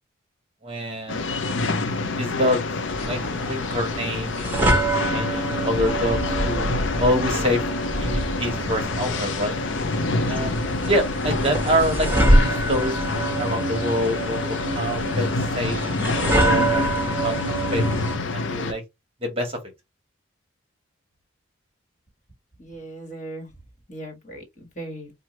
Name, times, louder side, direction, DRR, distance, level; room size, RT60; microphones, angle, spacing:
voice 1, 0.6-1.4 2.1-2.6 3.1-6.7 7.0-7.6 8.0-9.6 10.3-13.0 13.4-15.3 15.5-15.8 16.3-17.8 18.3-18.8 19.2-19.6, equal, 30° right, 1.2 m, -26 dB
sound 1, 1.1-18.7, left 3 dB, 65° left, 0.6 m, -27 dB
sound 2, 2.9-18.2, right 1 dB, 10° right, 1.2 m, -26 dB
voice 2, 10.7-11.1 22.6-23.5 23.9-25.1, right 1 dB, 35° left, 1.5 m, -38 dB
4.5 x 2.3 x 3.0 m
head